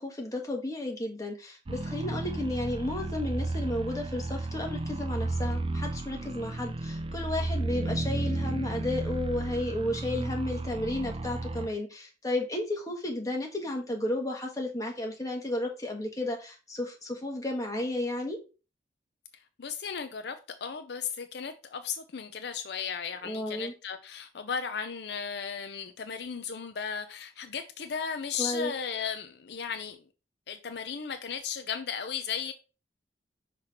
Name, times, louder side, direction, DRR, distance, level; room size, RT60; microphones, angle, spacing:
voice 1, 0.0-18.4 23.2-23.7 28.4-28.7, left 1 dB, 20° left, 1.5 m, -33 dB
sound 1, 1.7-11.7, right 2 dB, 30° right, 0.5 m, -33 dB
voice 2, 19.6-30.0 30.5-32.5, left 6 dB, 70° left, 0.6 m, -35 dB
5.8 x 3.3 x 5.7 m
head